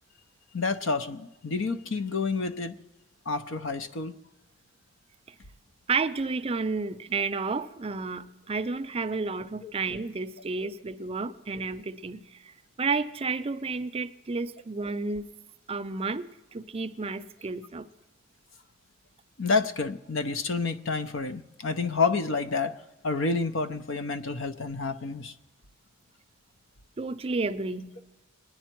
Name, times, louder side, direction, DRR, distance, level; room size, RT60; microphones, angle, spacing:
voice 1, 0.5-2.8 3.3-4.1 9.6-9.7 19.4-25.3, left 4 dB, 70° left, 0.7 m, -29 dB
voice 2, 5.9-15.3 15.7-16.2 16.5-17.9 27.0-28.0, right 4 dB, 30° right, 0.5 m, -31 dB
24.0 x 10.0 x 4.5 m
head